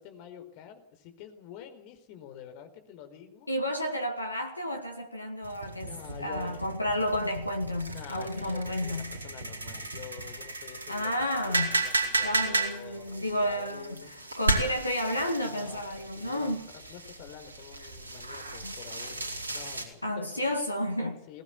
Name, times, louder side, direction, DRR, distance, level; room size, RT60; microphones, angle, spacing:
voice 1, 0.0-3.5 5.8-6.6 7.9-14.1 15.5-20.4 21.3-21.4, left 8 dB, 45° left, 4.4 m, -47 dB
voice 2, 3.5-5.9 6.2-9.2 10.9-11.8 12.1-16.6 18.6-18.7 20.0-21.2, left 1 dB, 85° left, 2.1 m, -31 dB
sound 1, 5.4-19.8, right 2 dB, 75° right, 4.5 m, -34 dB
22.0 x 19.0 x 7.1 m
figure-of-eight pair, 90°, 0 cm